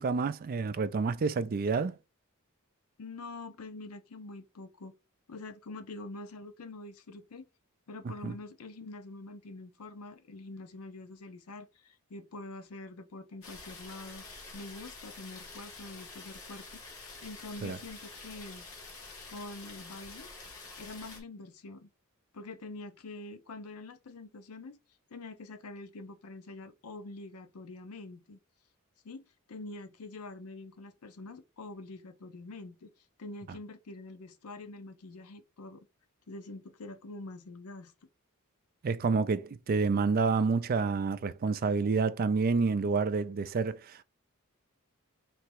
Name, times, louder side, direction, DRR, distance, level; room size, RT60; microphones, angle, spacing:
voice 1, 0.0-1.9 8.0-8.3 17.6-17.8 38.8-44.0, right 4 dB, 40° right, 0.4 m, -29 dB
voice 2, 3.0-5.0 5.3-7.5 7.9-14.2 14.5-16.8 17.2-18.7 19.3-20.3 20.8-21.9 22.3-24.8 25.1-28.4 29.0-32.9 33.2-35.8 36.3-37.9, left 2 dB, 90° left, 0.6 m, -45 dB
sound 1, 13.4-21.2, left 3 dB, 70° left, 1.4 m, -47 dB
3.3 x 3.0 x 4.6 m
head